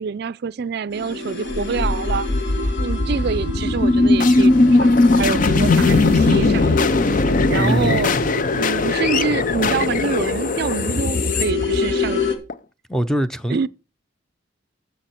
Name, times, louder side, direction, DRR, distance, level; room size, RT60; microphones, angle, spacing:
voice 1, 0.0-2.3 2.8-8.1 8.5-12.3 13.5-13.7, right 5 dB, 55° right, 0.4 m, -26 dB
sound 1, 0.9-12.4, left 4 dB, 65° left, 2.6 m, -28 dB
sound 2, 1.5-12.5, left 2 dB, 45° left, 0.6 m, -19 dB
voice 2, 7.5-8.2 12.9-13.6, equal, 5° left, 0.6 m, -23 dB
14.5 x 6.4 x 4.4 m
head